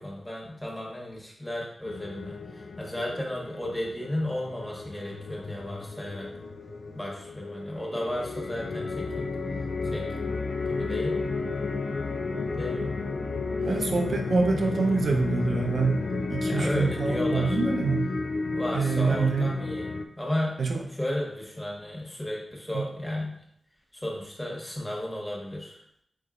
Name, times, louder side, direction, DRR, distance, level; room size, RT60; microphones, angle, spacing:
voice 1, 0.0-6.3 6.9-9.3 9.8-10.0 10.7-11.2 12.5-12.9 13.6-13.8 14.6-14.7 16.5-17.6 18.5-19.9 20.2-20.6 20.9-23.4 23.9-25.8, left 1 dB, 10° left, -3 dB, 1.2 m, -34 dB
sound 1, 1.9-20.1, left 3 dB, 65° left, 0.3 m, -32 dB
voice 2, 13.7-18.1 18.7-19.5 20.6-20.8 22.7-22.8, right 4 dB, 70° right, 2 dB, 0.6 m, -26 dB
4.5 x 4.0 x 2.5 m, 0.72 s
wide cardioid pair, 80°, 0 cm